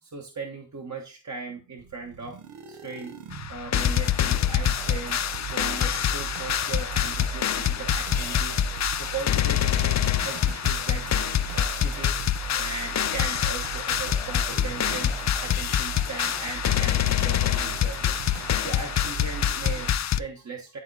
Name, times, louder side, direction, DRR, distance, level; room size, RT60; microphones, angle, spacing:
voice 1, 0.0-2.4 2.7-3.1 3.5-11.0 11.5-12.1 12.5-20.8, right 4 dB, 35° right, 1 dB, 1.2 m, -38 dB
sound 1, 1.8-19.9, right 8 dB, 85° right, 1.1 m, -38 dB
sound 2, 3.3-20.2, left 10 dB, 40° left, 0.4 m, -26 dB
10.5 x 3.6 x 3.9 m, 0.32 s
cardioid pair, 75°, 49 cm